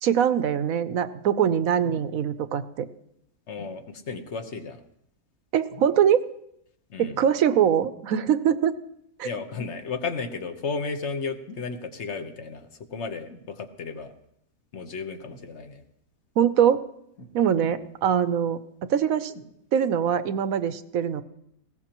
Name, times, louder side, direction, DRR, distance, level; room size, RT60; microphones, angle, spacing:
voice 1, 0.0-2.9 5.5-6.2 7.0-8.7 9.2-9.3 16.4-16.8 17.3-18.6 18.9-19.3 19.7-21.2, right 8 dB, 65° right, 12 dB, 1.0 m, -23 dB
sound 1, 1.8-2.2 3.6-3.8 5.7-6.1 7.5-7.8 9.6-9.8 11.5-11.7 13.3-13.5 15.2-15.5 17.2-17.7 19.3-19.6 20.4-20.5, left 1 dB, 65° left, 2.5 m, -46 dB
voice 2, 3.5-4.8 6.9-7.2 9.2-14.1 14.7-15.8 17.6-17.7, left 4 dB, 50° left, 7 dB, 1.3 m, -34 dB
19.5 x 16.5 x 3.0 m, 0.75 s
omnidirectional pair, 1.7 m